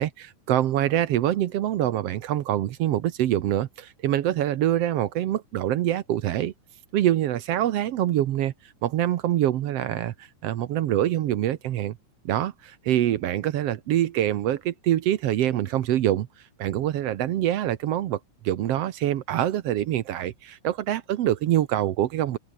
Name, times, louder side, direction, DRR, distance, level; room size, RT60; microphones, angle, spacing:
voice 1, 0.0-6.5 6.9-8.5 8.8-12.0 12.2-16.3 16.6-18.2 18.4-22.4, right 12 dB, 65° right, 1.6 m, -25 dB
open air
omnidirectional pair, 3.7 m